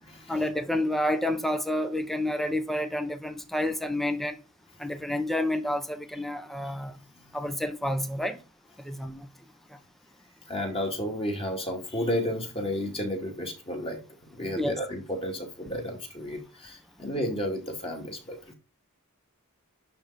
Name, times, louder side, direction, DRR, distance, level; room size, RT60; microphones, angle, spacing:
voice 1, 0.3-4.4 4.8-7.0 7.3-8.4 8.8-9.3 9.7-9.8 14.5-14.7, left 1 dB, ahead, 0.8 m, -29 dB
voice 2, 10.5-14.0 14.3-18.5, left 1 dB, 25° left, 2.3 m, -32 dB
11.0 x 3.7 x 5.6 m
head